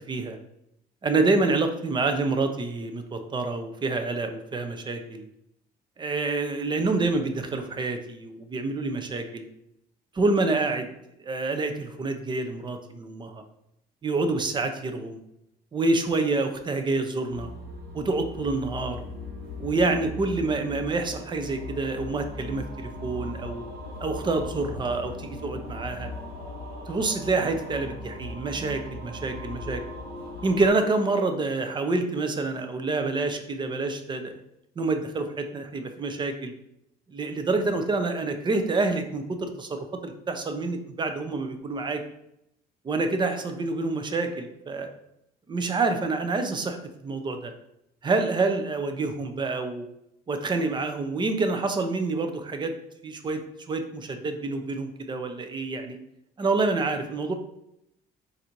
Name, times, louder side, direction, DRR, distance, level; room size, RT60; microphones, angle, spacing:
voice 1, 1.0-5.2 6.0-9.5 10.1-10.9 11.2-13.4 14.0-15.2 15.7-17.5 17.9-19.0 19.6-23.6 24.0-26.1 26.9-29.8 30.4-34.3 34.8-36.5 37.1-42.0 42.8-44.9 45.5-47.5 48.0-49.8 50.3-52.7 53.0-56.0 56.4-57.3, right 3 dB, 25° right, 6 dB, 0.6 m, -27 dB
sound 1, 17.3-30.7, left 1 dB, 60° right, 1.5 m, -38 dB
4.0 x 2.6 x 4.4 m, 0.80 s
cardioid pair, 110°, 17 cm